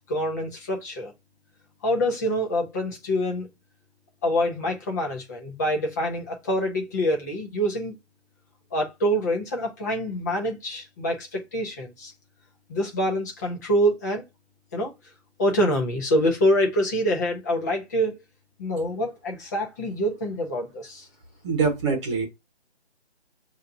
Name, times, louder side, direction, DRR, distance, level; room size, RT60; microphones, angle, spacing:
voice 1, 0.1-1.1 1.8-3.5 4.2-7.9 8.7-12.1 12.7-14.2 14.7-14.9 15.4-18.2 18.6-21.1, equal, 15° left, 0.8 m, -25 dB
voice 2, 21.4-22.2, right 5 dB, 25° right, 1.4 m, -24 dB
6.6 x 2.8 x 2.7 m
figure-of-eight pair, 155°, 33 cm